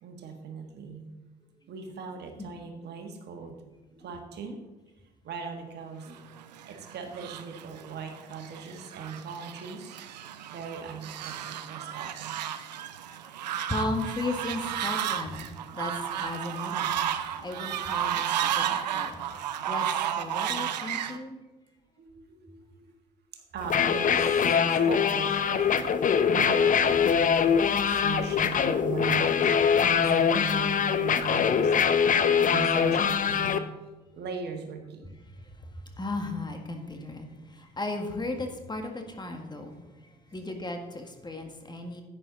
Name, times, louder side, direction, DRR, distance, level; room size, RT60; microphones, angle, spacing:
voice 1, 0.0-1.1 1.7-4.6 5.2-6.3 6.6-9.8 10.1-12.3 15.5-16.0 22.0-22.9 23.3-25.9 26.3-29.4 30.0-31.7 32.0-33.6 34.1-35.1 41.3-41.4, right 5 dB, 55° right, 4 dB, 1.6 m, -39 dB
Fowl, 6.3-21.2, right 10 dB, 90° right, 0.6 m, -33 dB
voice 2, 13.1-15.9 16.2-16.9 17.4-19.2 19.7-19.9 20.1-21.4 36.0-39.8 40.3-42.0, left 2 dB, 20° left, 5 dB, 1.8 m, -35 dB
sound 1, 23.6-33.6, left 7 dB, 40° left, 0.8 m, -23 dB
11.0 x 9.4 x 3.9 m, 1.1 s
hypercardioid pair, 55°, 21 cm